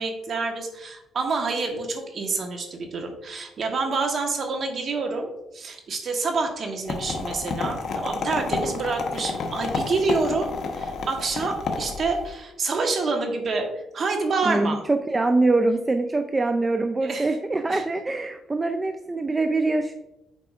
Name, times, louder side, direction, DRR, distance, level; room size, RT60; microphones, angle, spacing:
voice 1, 0.0-10.5 10.7-14.8 17.0-17.3 17.7-17.8, right 3 dB, 55° right, 3 dB, 1.2 m, -27 dB
sound 1, 6.9-12.3, left 4 dB, 65° left, 0.9 m, -30 dB
voice 2, 14.5-19.9, right 2 dB, 20° right, 6 dB, 0.4 m, -24 dB
8.3 x 4.8 x 2.4 m, 0.92 s
cardioid pair, 90°, 0 cm